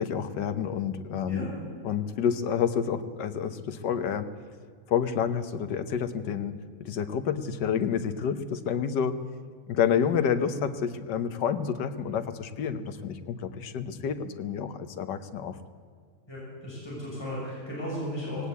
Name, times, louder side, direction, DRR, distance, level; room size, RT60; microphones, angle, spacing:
voice 1, 0.0-1.5 1.8-4.3 4.9-9.2 9.7-15.6, left 7 dB, 85° left, 11 dB, 1.7 m, -29 dB
voice 2, 16.3-18.5, equal, 15° left, -6 dB, 6.5 m, -35 dB
18.5 x 17.0 x 8.3 m, 2.1 s
omnidirectional pair, 1.8 m